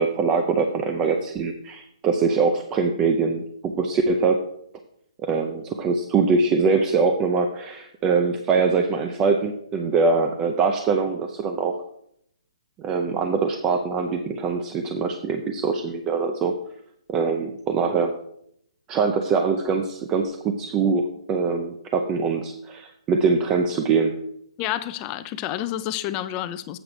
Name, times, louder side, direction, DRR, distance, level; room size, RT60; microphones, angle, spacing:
voice 1, 0.0-4.4 5.2-11.7 12.8-16.5 17.1-18.1 18.9-24.1, right 4 dB, 20° right, 0.6 m, -23 dB
voice 2, 24.6-26.8, left 12 dB, 25° left, 0.5 m, -29 dB
7.9 x 4.7 x 6.6 m
figure-of-eight pair, 140°, 3 cm